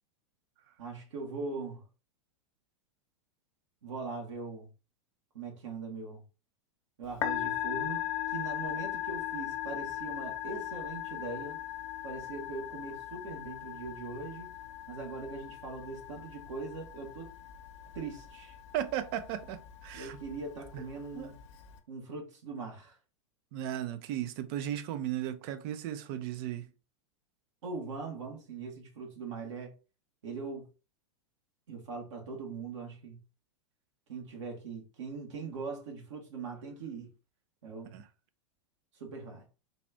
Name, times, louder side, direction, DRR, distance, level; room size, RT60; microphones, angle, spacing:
voice 1, 0.8-1.8 3.8-4.7 5.3-6.2 7.0-11.6 12.0-14.6 14.9-17.3 17.9-18.6 19.9-21.4 21.9-23.0 27.6-29.7 30.2-30.7 31.7-33.2 34.1-37.1 37.6-38.0 38.9-39.4, right 4 dB, 70° right, 1.2 m, -41 dB
Musical instrument, 7.0-21.8, left 13 dB, 65° left, 0.8 m, -39 dB
voice 2, 18.7-20.2 20.7-20.9 21.1-21.3 23.5-26.7 37.9-38.1, right 11 dB, 50° right, 0.6 m, -36 dB
4.1 x 2.5 x 3.3 m
hypercardioid pair, 95°, 16 cm